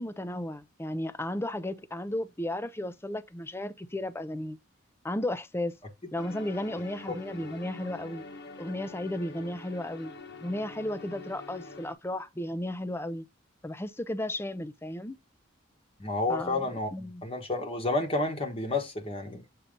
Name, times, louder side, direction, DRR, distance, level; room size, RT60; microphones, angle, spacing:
voice 1, 0.0-4.6 5.0-5.8 6.1-8.2 8.6-10.1 10.4-13.2 13.6-15.1 16.3-16.6 16.9-17.2, left 1 dB, 15° left, 0.5 m, -34 dB
sound 1, 6.2-11.9, left 2 dB, 60° left, 1.1 m, -45 dB
voice 2, 16.0-19.4, left 2 dB, 30° left, 1.1 m, -30 dB
7.3 x 2.8 x 5.1 m
head